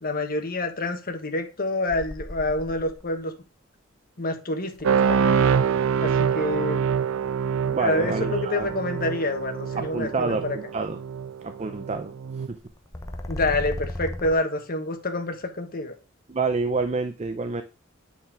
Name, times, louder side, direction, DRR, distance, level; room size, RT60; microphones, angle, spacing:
voice 1, 0.0-3.3 4.2-5.4 6.0-6.8 7.8-10.6 13.3-15.9, left 2 dB, 45° left, 5 dB, 1.6 m, -27 dB
sound 1, 1.9-3.1 4.8-5.7 12.6-14.3, left 1 dB, 15° left, 0.8 m, -35 dB
sound 2, 4.8-12.5, right 7 dB, 80° right, 0.4 m, -25 dB
voice 2, 7.7-8.7 9.8-11.0 11.4-12.1 12.5-12.6 16.3-17.6, right 4 dB, 35° right, 8 dB, 0.6 m, -28 dB
9.1 x 4.6 x 3.6 m, 0.33 s
head